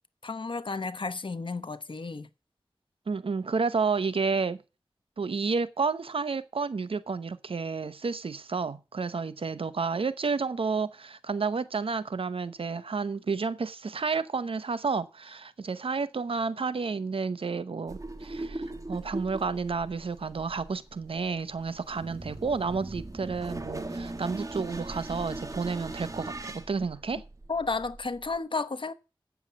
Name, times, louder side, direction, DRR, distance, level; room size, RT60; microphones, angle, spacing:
voice 1, 0.2-2.3 27.5-28.9, left 4 dB, 65° left, 1.0 m, -32 dB
voice 2, 3.1-4.6 5.2-27.2, right 4 dB, 85° right, 0.8 m, -31 dB
sound 1, 17.9-28.4, right 2 dB, 40° right, 1.3 m, -40 dB
8.3 x 7.1 x 7.3 m
wide cardioid pair, 60°, 9 cm